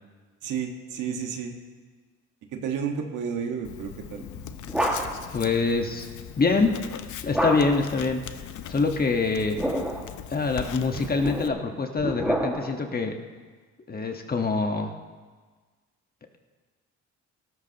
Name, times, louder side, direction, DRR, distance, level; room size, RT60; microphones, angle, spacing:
voice 1, 0.4-1.5 2.5-4.2, right 7 dB, 80° right, 3 dB, 1.6 m, -31 dB
Writing, 3.6-11.5, left 9 dB, 75° left, 0.8 m, -40 dB
sound 1, 4.2-5.4 7.3-8.0 9.3-10.1 10.9-12.9, equal, 5° right, 1.9 m, -29 dB
voice 2, 5.3-6.1 6.4-6.7 7.2-8.2 8.7-9.6 10.3-13.1 13.9-14.9, left 4 dB, 30° left, 4 dB, 1.3 m, -25 dB
17.5 x 13.5 x 2.9 m, 1.4 s
cardioid pair, 90°, 30 cm